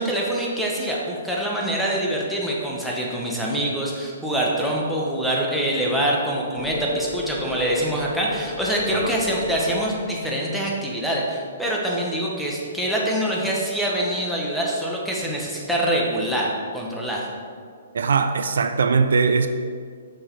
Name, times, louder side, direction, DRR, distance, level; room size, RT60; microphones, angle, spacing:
voice 1, 0.0-17.3, right 1 dB, ahead, -5 dB, 1.0 m, -25 dB
sound 1, 6.6-11.0, left 4 dB, 45° left, 0.7 m, -33 dB
voice 2, 17.9-19.5, right 5 dB, 75° right, 8 dB, 0.3 m, -20 dB
6.4 x 3.8 x 4.6 m, 2.1 s
hypercardioid pair, 135°, 0 cm